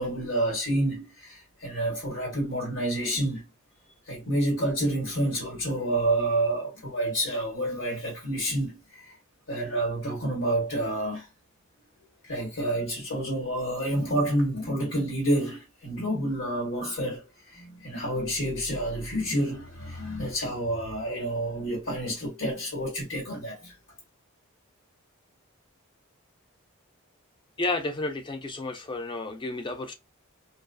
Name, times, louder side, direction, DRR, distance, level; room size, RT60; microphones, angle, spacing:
voice 1, 0.0-3.5 4.1-9.2 9.5-11.3 12.2-23.7, right 1 dB, 80° left, 1.3 m, -29 dB
voice 2, 27.6-29.9, left 2 dB, 20° left, 0.3 m, -31 dB
2.3 x 2.3 x 2.4 m
head